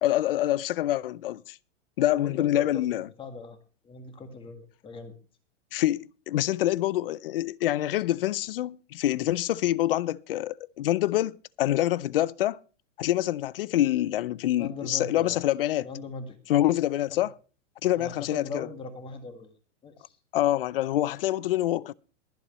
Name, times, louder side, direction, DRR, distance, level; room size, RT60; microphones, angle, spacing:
voice 1, 0.0-1.6 2.0-3.1 5.7-12.6 13.0-15.9 16.5-17.3 17.8-18.7 20.3-21.9, left 14 dB, 50° left, 0.5 m, -26 dB
voice 2, 2.1-3.6 3.8-5.1 14.6-15.4 15.8-16.4 17.1-17.2 18.0-19.5 19.8-20.2, left 3 dB, 15° left, 1.8 m, -40 dB
22.5 x 8.0 x 3.1 m
hypercardioid pair, 155°, 36 cm